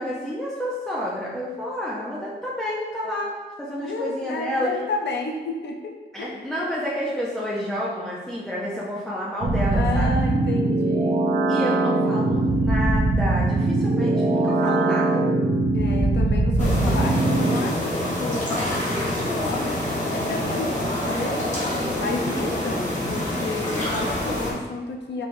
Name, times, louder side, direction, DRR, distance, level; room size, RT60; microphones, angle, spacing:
voice 1, 0.0-4.8 6.1-10.2 11.5-15.3, equal, 5° left, -7 dB, 0.6 m, -29 dB
voice 2, 3.8-6.5 9.7-11.3 15.7-19.8 20.1-21.7 22.0-25.3, left 3 dB, 70° left, 2 dB, 0.6 m, -31 dB
sound 1, 9.4-17.6, right 2 dB, 45° right, 0.6 m, -21 dB
sound 2, 16.6-24.5, left 1 dB, 40° left, 1.3 m, -26 dB
4.5 x 3.3 x 2.6 m, 1.3 s
wide cardioid pair, 100°, 19 cm